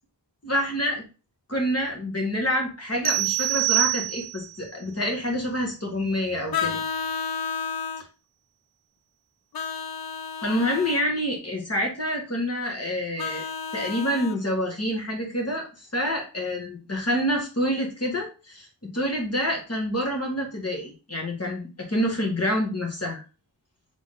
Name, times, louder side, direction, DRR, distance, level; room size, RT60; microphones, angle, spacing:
voice 1, 0.4-1.1 1.5-6.8 10.4-13.4 13.7-23.2, equal, 35° left, 0 dB, 1.5 m, -27 dB
sound 1, 3.0-4.6, right 19 dB, 65° right, 0.6 m, -25 dB
Vehicle horn car horn honking, 6.5-8.1 9.5-11.0 13.2-14.4, left 6 dB, 60° left, 0.5 m, -31 dB
3.7 x 3.5 x 3.7 m, 0.33 s
wide cardioid pair, 60°, 43 cm